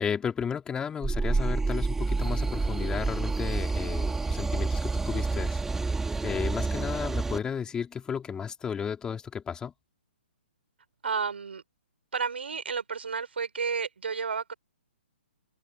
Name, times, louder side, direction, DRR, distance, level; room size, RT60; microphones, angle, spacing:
voice 1, 0.0-5.6 6.2-9.7, left 7 dB, 15° left, 3.3 m, -33 dB
sound 1, 1.0-7.4, right 3 dB, 5° right, 2.5 m, -28 dB
voice 2, 11.0-11.6 12.1-14.5, right 5 dB, 75° right, 4.3 m, -31 dB
hypercardioid pair, 130°, 6 cm